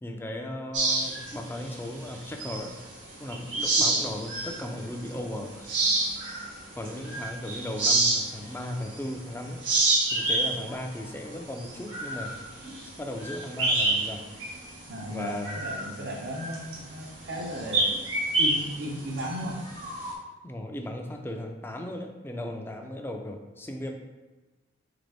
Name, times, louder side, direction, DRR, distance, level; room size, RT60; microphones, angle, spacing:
voice 1, 0.0-2.8 3.2-5.8 6.8-9.6 10.1-12.3 13.0-14.2 15.1-15.6 20.4-23.9, left 1 dB, 10° left, 3 dB, 0.4 m, -36 dB
sound 1, 0.7-2.9 3.3-4.6 5.1-5.2 5.6-9.2 9.5-14.1 14.4-14.6 15.0-20.1, right 2 dB, 75° right, 1.2 m, -28 dB
voice 2, 14.9-17.9 18.4-19.7, equal, 60° right, 1 dB, 0.8 m, -35 dB
3.9 x 3.9 x 3.3 m, 1.2 s
head